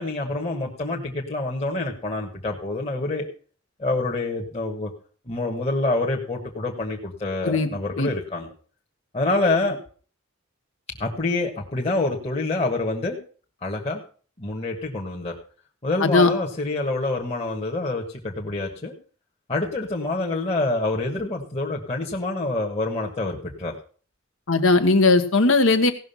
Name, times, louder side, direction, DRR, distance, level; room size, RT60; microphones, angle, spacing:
voice 1, 0.0-3.3 3.8-4.9 5.2-8.5 9.1-9.8 11.0-13.2 13.6-14.0 14.4-15.3 15.8-18.9 19.5-23.7, left 2 dB, 30° left, -1 dB, 1.4 m, -26 dB
voice 2, 16.0-16.3 24.5-25.9, left 3 dB, 75° left, 8 dB, 1.4 m, -18 dB
16.5 x 6.3 x 5.6 m, 0.41 s
head